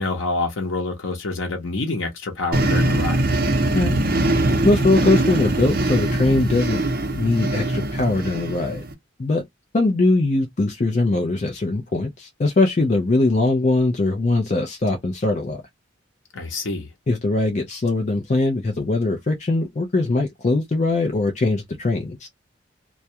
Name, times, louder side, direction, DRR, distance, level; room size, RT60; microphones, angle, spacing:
voice 1, 0.0-3.3 16.3-16.9, left 3 dB, 85° left, 0.7 m, -27 dB
sound 1, 2.5-8.9, right 1 dB, 50° right, 0.7 m, -22 dB
voice 2, 4.6-6.8 7.2-8.8 9.2-9.4 9.7-15.6 17.1-22.2, left 2 dB, 35° left, 0.4 m, -21 dB
2.3 x 2.1 x 2.7 m
head